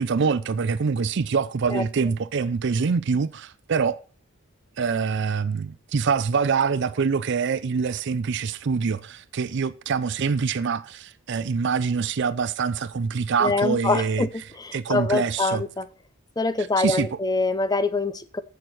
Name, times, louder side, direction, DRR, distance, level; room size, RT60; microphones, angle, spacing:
voice 1, 0.0-4.0 4.8-14.3 14.7-15.6 16.8-17.1, right 5 dB, 60° right, 0.5 m, -25 dB
voice 2, 13.4-15.9 16.4-18.4, left 3 dB, 20° left, 0.6 m, -25 dB
8.1 x 6.9 x 5.9 m
head